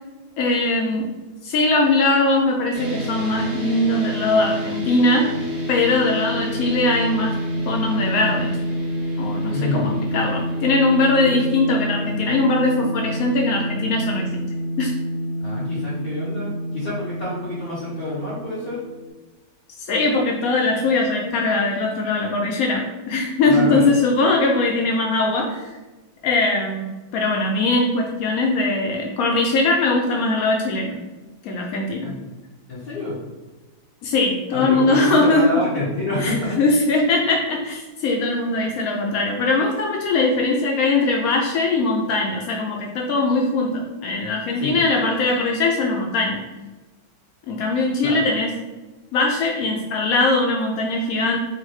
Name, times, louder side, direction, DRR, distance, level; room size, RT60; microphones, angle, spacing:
voice 1, 0.4-1.1 1.4-5.3 5.7-7.3 7.7-8.6 9.2-14.3 14.8-14.9 19.8-25.8 26.2-31.0 31.4-32.1 34.0-35.4 36.2-46.4 47.5-48.5 49.1-51.4, left 2 dB, 85° left, 0 dB, 0.7 m, -21 dB
sound 1, 2.7-19.1, equal, 45° right, 1.1 m, -28 dB
voice 2, 9.5-10.0 11.2-11.4 15.4-18.8 23.4-23.9 32.0-32.2 32.7-33.2 34.5-36.6 44.5-44.8 48.0-48.2, left 2 dB, 50° left, -11 dB, 1.7 m, -27 dB
4.5 x 2.1 x 4.7 m, 1.2 s
omnidirectional pair, 2.2 m